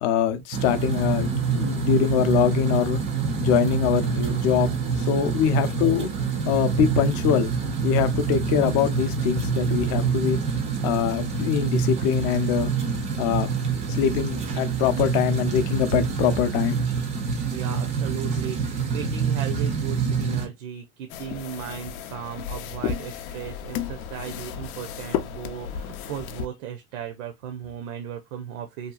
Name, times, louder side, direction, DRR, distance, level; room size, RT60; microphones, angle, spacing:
voice 1, 0.0-3.0 3.4-4.7 5.0-6.1 6.5-7.5 7.8-10.4 10.8-12.7 13.2-13.5 13.9-16.8, left 8 dB, 45° left, 0.5 m, -23 dB
sound 1, 0.5-20.5, right 6 dB, 20° right, 0.4 m, -26 dB
voice 2, 17.5-28.9, right 9 dB, 75° right, 0.6 m, -36 dB
sound 2, 21.1-26.5, left 8 dB, 90° left, 0.6 m, -33 dB
2.8 x 2.3 x 2.2 m
supercardioid pair, 140°, 41 cm